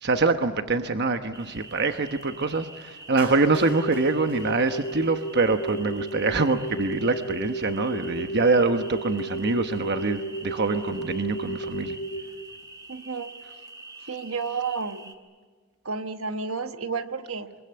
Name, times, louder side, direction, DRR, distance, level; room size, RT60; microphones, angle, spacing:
voice 1, 0.0-12.0, right 3 dB, 50° right, 7 dB, 1.1 m, -25 dB
sound 1, 1.3-15.2, right 2 dB, 20° right, 1.8 m, -45 dB
sound 2, 3.1-12.2, right 1 dB, 75° left, 4.4 m, -34 dB
Clapping, 3.2-5.5, right 3 dB, 90° right, 7.3 m, -43 dB
voice 2, 12.9-13.4 14.1-15.1 15.8-17.5, right 5 dB, 70° right, 8 dB, 1.2 m, -31 dB
24.5 x 23.5 x 8.7 m, 1.4 s
head